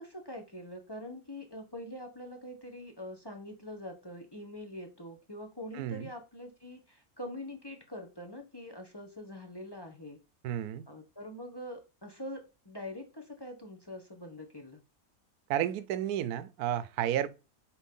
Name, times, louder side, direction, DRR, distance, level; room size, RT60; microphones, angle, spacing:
voice 1, 0.0-10.2 10.9-14.8, left 1 dB, 20° left, 0.9 m, -44 dB
voice 2, 5.7-6.1 10.4-10.8 15.5-17.3, right 11 dB, 85° right, 1.1 m, -32 dB
4.6 x 4.3 x 5.3 m
omnidirectional pair, 1.6 m